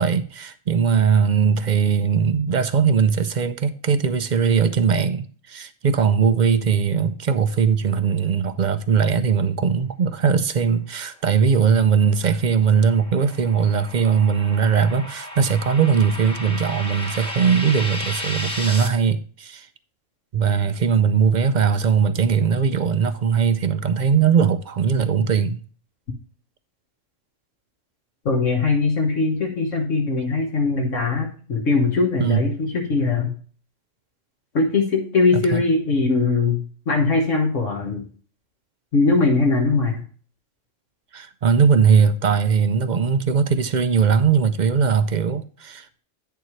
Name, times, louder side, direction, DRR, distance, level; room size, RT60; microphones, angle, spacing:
voice 1, 0.0-19.7 20.3-25.6 32.2-32.4 35.5-35.6 41.1-46.0, right 6 dB, 55° right, 0.5 m, -20 dB
sound 1, 12.1-18.9, left 1 dB, 5° left, 1.2 m, -34 dB
voice 2, 28.2-33.3 34.5-38.0 38.9-40.0, left 3 dB, 70° left, 1.6 m, -21 dB
9.3 x 6.9 x 3.1 m
omnidirectional pair, 1.3 m